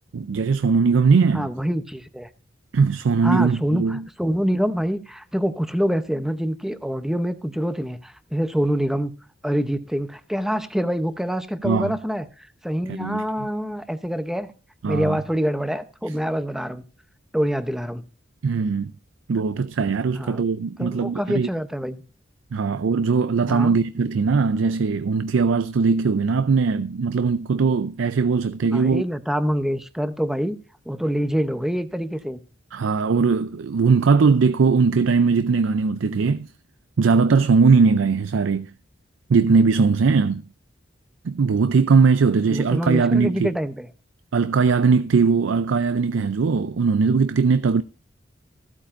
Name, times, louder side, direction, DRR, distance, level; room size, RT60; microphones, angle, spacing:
voice 1, 0.1-1.5 2.7-4.0 11.6-12.0 12.9-13.2 14.8-15.2 18.4-18.9 19.3-21.5 22.5-29.0 32.7-36.5 37.0-38.7 39.3-40.4 41.2-43.5 44.3-47.8, right 5 dB, 80° right, 0.4 m, -20 dB
voice 2, 1.3-2.3 3.2-9.1 9.4-14.5 14.8-16.8 17.3-18.0 20.1-20.4 20.8-22.0 23.5-23.8 28.7-30.6 30.9-32.4 42.5-43.9, equal, ahead, 0.7 m, -25 dB
15.0 x 8.5 x 2.5 m
head